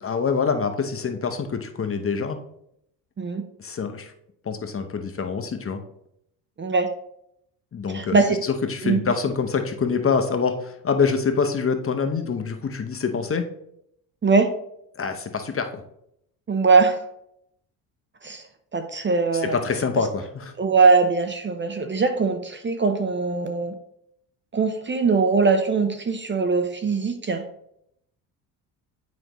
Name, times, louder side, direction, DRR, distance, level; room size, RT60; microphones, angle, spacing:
voice 1, 0.0-2.4 3.6-4.1 4.4-5.8 7.7-13.5 15.0-15.8 19.3-20.5, left 5 dB, 30° left, 6 dB, 0.9 m, -25 dB
voice 2, 6.6-6.9 7.9-8.4 8.8-9.0 14.2-14.5 16.5-17.0 18.2-18.4 18.7-19.6 20.6-23.8 24.5-27.5, right 4 dB, 25° right, 7 dB, 0.7 m, -21 dB
7.7 x 5.2 x 3.0 m, 0.75 s
supercardioid pair, 65°, 46 cm